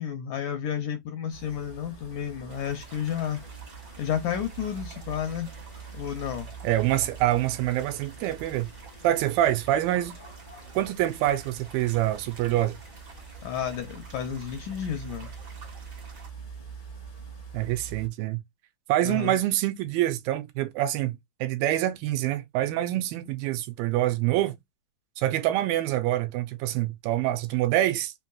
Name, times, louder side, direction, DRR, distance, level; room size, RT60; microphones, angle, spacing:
voice 1, 0.0-3.4 4.0-5.5 5.9-6.5 13.4-15.3 19.1-19.4, left 9 dB, 80° left, 1.9 m, -31 dB
sound 1, 1.3-18.1, right 5 dB, 30° left, 0.9 m, -44 dB
sound 2, 2.5-16.3, right 4 dB, 50° right, 1.4 m, -51 dB
voice 2, 6.6-8.7 9.0-10.1 10.8-12.8 17.5-18.4 18.9-24.6 25.2-28.1, right 14 dB, 80° right, 2.3 m, -26 dB
5.6 x 2.8 x 2.3 m
omnidirectional pair, 4.2 m